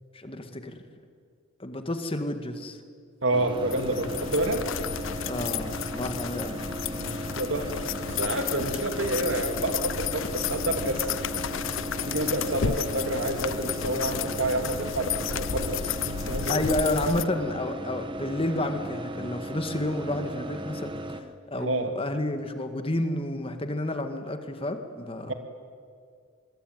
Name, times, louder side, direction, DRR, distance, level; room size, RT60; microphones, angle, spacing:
voice 1, 0.1-0.8 1.6-2.8 5.3-6.6 16.5-25.3, left 1 dB, 25° left, 7 dB, 1.9 m, -30 dB
voice 2, 3.2-4.6 7.0-7.7 8.0-11.1 12.1-16.6 21.6-21.9 25.3-25.4, right 1 dB, 65° right, 6 dB, 2.8 m, -29 dB
sound 1, 3.3-21.2, right 1 dB, 25° right, 1.4 m, -36 dB
sound 2, 3.6-17.2, left 8 dB, 70° left, 0.6 m, -32 dB
27.5 x 21.0 x 9.4 m, 2.2 s
head